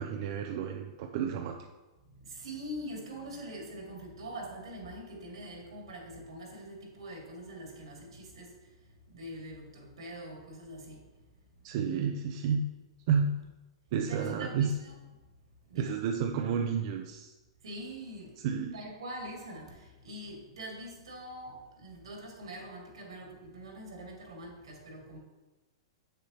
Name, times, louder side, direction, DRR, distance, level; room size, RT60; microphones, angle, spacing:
voice 1, 0.0-1.6 11.6-12.6 13.1-13.4 13.9-14.7 15.7-17.3 18.4-18.8, right 7 dB, 55° right, 3 dB, 0.5 m, -31 dB
voice 2, 2.2-8.6 9.1-11.0 14.1-14.9 15.7-16.0 17.6-18.4 18.7-25.2, right 1 dB, 90° right, 0 dB, 2.3 m, -44 dB
8.1 x 6.7 x 2.9 m, 1.1 s
hypercardioid pair, 130°, 3 cm